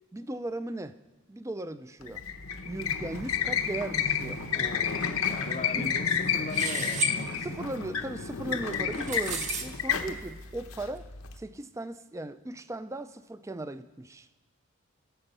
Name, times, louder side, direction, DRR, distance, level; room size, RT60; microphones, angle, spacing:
voice 1, 0.1-1.0 1.3-2.2 2.6-4.4 5.7-5.9 7.4-11.1 11.4-14.3, right 2 dB, 15° right, 13 dB, 0.4 m, -37 dB
sound 1, 2.0-11.3, left 7 dB, 85° left, 0.9 m, -30 dB
voice 2, 4.5-7.6, left 3 dB, 35° left, 2 dB, 0.6 m, -40 dB
sound 2, 6.5-7.1 8.7-9.7, right 6 dB, 35° right, 1.0 m, -33 dB
17.0 x 7.1 x 5.4 m, 1.1 s
head